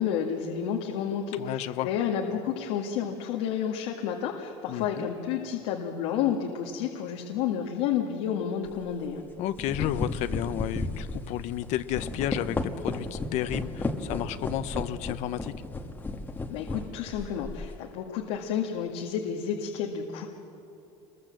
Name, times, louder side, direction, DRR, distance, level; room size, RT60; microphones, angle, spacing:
voice 1, 0.0-9.2 16.5-20.3, left 8 dB, 85° left, 1 dB, 1.9 m, -30 dB
voice 2, 1.4-1.9 4.7-5.1 9.4-15.5, left 12 dB, 60° left, 12 dB, 0.9 m, -32 dB
sound 1, 8.7-8.8 9.4-17.8, left 2 dB, 15° left, 1.4 m, -34 dB
27.0 x 21.5 x 7.7 m, 2.8 s
cardioid pair, 150°, 13 cm